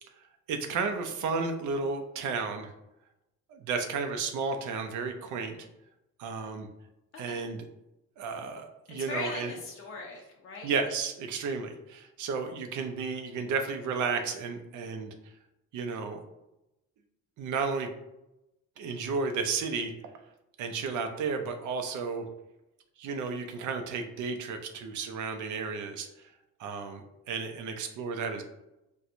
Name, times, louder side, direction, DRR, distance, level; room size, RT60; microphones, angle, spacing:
voice 1, 0.5-2.7 3.5-5.5 6.2-6.7 7.2-7.6 8.2-9.5 10.6-15.1 15.7-16.2 17.4-17.9 18.8-19.9 20.6-22.3 23.0-26.1 26.6-28.4, right 5 dB, 75° right, 6 dB, 0.6 m, -33 dB
voice 2, 7.1-7.4 9.0-10.7, left 3 dB, 45° left, -2 dB, 0.6 m, -39 dB
4.3 x 2.2 x 2.5 m, 0.91 s
cardioid pair, 90°, 30 cm